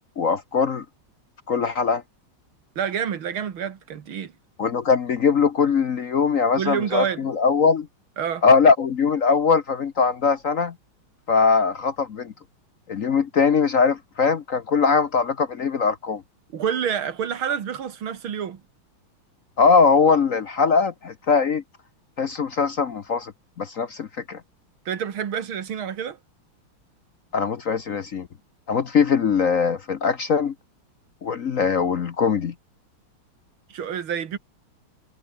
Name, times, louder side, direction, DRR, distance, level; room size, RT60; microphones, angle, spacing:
voice 1, 0.2-0.8 1.5-2.0 4.6-7.9 8.4-10.7 11.3-12.3 12.9-16.2 19.6-21.6 22.2-23.3 23.6-24.4 27.3-28.3 28.7-30.5 31.2-32.5, left 5 dB, 50° left, 1.1 m, -21 dB
voice 2, 2.8-4.3 6.6-7.3 8.2-8.4 16.5-18.6 24.9-26.2 33.7-34.4, right 8 dB, 80° right, 2.5 m, -28 dB
omnidirectional pair, 2.3 m